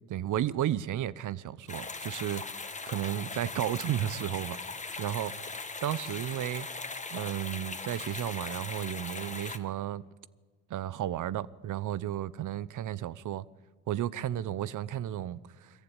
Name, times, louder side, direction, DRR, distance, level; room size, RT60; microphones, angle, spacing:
voice 1, 0.1-4.6 5.0-5.3 5.8-6.7 7.1-10.1 10.7-13.4 13.9-15.8, right 12 dB, 60° right, 0.9 m, -33 dB
sound 1, 1.7-9.6, left 3 dB, 20° left, 1.9 m, -39 dB
23.0 x 14.5 x 10.0 m
supercardioid pair, 55°, 35 cm